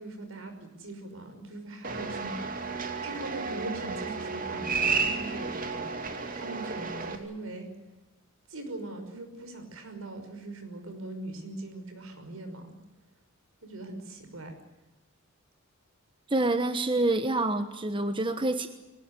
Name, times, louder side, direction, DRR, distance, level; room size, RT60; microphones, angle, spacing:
voice 1, 0.0-5.9 6.3-7.7 8.5-12.8 13.6-14.6, right 2 dB, 75° right, 6 dB, 5.7 m, -41 dB
sound 1, 1.8-7.2, right 4 dB, 40° right, 2.7 m, -32 dB
voice 2, 16.3-18.7, right 2 dB, 25° right, 9 dB, 1.1 m, -27 dB
22.5 x 19.5 x 9.8 m, 1.0 s
head